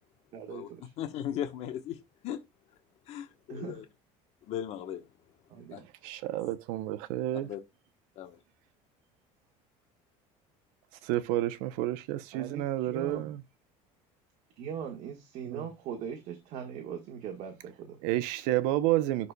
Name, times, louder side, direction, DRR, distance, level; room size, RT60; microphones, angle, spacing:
voice 1, 0.3-0.9 3.5-3.8 5.5-5.9 12.3-13.3 14.6-18.0, right 8 dB, 55° right, 1.7 m, -40 dB
voice 2, 1.0-2.0 2.2-2.4 3.1-3.8 4.5-5.0 5.7-5.8 7.4-7.6 8.2-8.4, left 10 dB, 50° left, 1.2 m, -37 dB
voice 3, 6.0-7.5 11.0-13.4 15.5-15.7 18.0-19.3, right 15 dB, 80° right, 0.8 m, -30 dB
11.0 x 4.2 x 2.3 m
cardioid pair, 140°, 14 cm